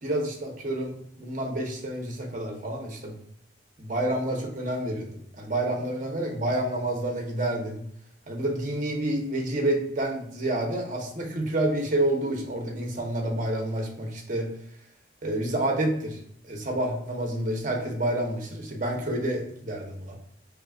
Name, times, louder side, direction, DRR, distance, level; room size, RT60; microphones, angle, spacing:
voice 1, 0.0-0.9 1.2-3.1 3.8-5.1 5.3-7.8 8.3-14.5 15.2-16.2 16.4-20.2, right 1 dB, 45° right, 0 dB, 0.9 m, -28 dB
4.7 x 3.3 x 2.4 m, 0.69 s
head